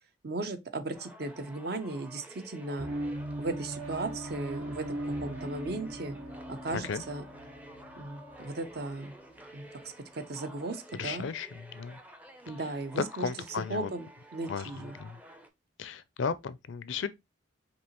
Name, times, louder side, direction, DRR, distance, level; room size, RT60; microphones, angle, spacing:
voice 1, 0.2-2.9 3.4-6.2 6.5-7.3 8.0-9.1 9.5-9.7 10.1-11.3 12.5-15.0, right 2 dB, 55° right, 0.6 m, -36 dB
sound 1, 0.9-15.5, equal, 10° right, 0.5 m, -51 dB
sound 2, 2.8-10.1, right 1 dB, 80° right, 1.5 m, -40 dB
voice 2, 6.7-7.0 11.0-11.5 11.7-12.0 12.9-13.9 14.5-14.7 15.0-15.2 15.8-17.1, left 5 dB, 80° left, 0.4 m, -34 dB
5.2 x 2.8 x 2.9 m
head